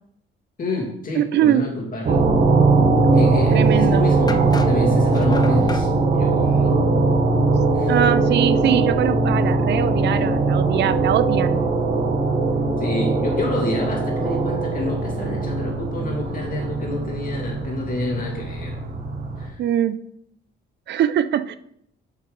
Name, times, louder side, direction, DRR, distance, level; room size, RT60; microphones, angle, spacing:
voice 1, 0.6-2.2 3.1-5.9 6.2-6.8 7.7-7.9 12.8-18.8 19.4-19.6, left 1 dB, 45° left, 0 dB, 2.4 m, -28 dB
voice 2, 1.2-1.7 3.5-4.1 7.9-11.6 19.6-20.0 20.9-21.6, right 10 dB, 60° right, 13 dB, 0.4 m, -22 dB
sound 1, 2.0-19.5, right 3 dB, 45° right, 1.3 m, -20 dB
sound 2, 4.3-5.9, left 3 dB, 20° left, 0.5 m, -33 dB
7.1 x 5.9 x 3.9 m, 0.72 s
cardioid pair, 90°, 20 cm